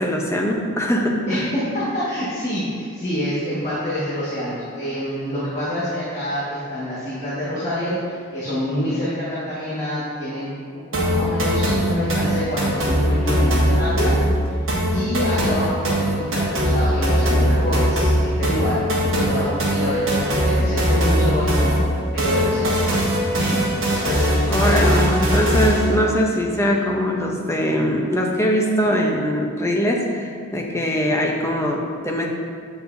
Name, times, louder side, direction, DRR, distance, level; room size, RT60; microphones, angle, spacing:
voice 1, 0.0-1.4 24.5-32.3, equal, 15° left, 0 dB, 0.6 m, -21 dB
voice 2, 1.3-14.2 14.5-14.6 14.9-21.7 22.1-22.8 23.4-23.6 24.0-25.1, equal, 30° left, -11 dB, 1.5 m, -26 dB
sound 1, 10.9-25.9, equal, 60° right, 1.4 m, -20 dB
7.9 x 7.0 x 2.6 m, 2.3 s
head